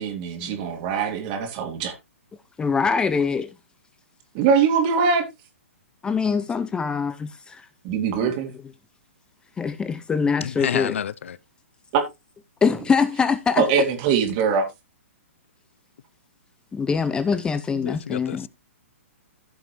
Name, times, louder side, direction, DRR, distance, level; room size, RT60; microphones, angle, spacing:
voice 1, 0.0-1.9 4.3-5.3 7.8-8.5 11.9-12.0 13.6-14.7, right 6 dB, 40° right, 3.0 m, -22 dB
voice 2, 2.6-3.6 6.0-7.7 8.1-8.3 9.6-11.0 12.6-13.6 16.7-18.5, left 5 dB, 10° left, 0.5 m, -24 dB
voice 3, 10.4-11.4 17.7-18.5, left 8 dB, 65° left, 0.6 m, -29 dB
15.0 x 5.8 x 3.0 m
hypercardioid pair, 125°, 7 cm